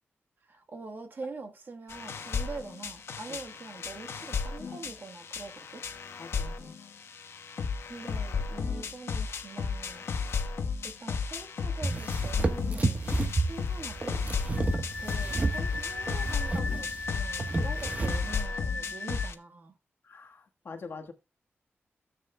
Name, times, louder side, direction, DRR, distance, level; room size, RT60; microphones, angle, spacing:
voice 1, 0.4-5.8 7.8-10.0 10.8-13.0 13.4-14.2 15.0-19.7, right 3 dB, 55° right, 1.3 m, -44 dB
sound 1, 1.9-19.3, left 5 dB, 80° left, 1.0 m, -34 dB
voice 2, 6.2-6.8 20.0-21.1, left 4 dB, 60° left, 1.4 m, -44 dB
sound 2, 11.8-18.3, right 3 dB, 35° right, 1.1 m, -31 dB
Wind instrument woodwind instrument, 14.6-19.3, left 4 dB, 25° left, 0.6 m, -38 dB
14.5 x 7.5 x 2.2 m
wide cardioid pair, 120°, 4 cm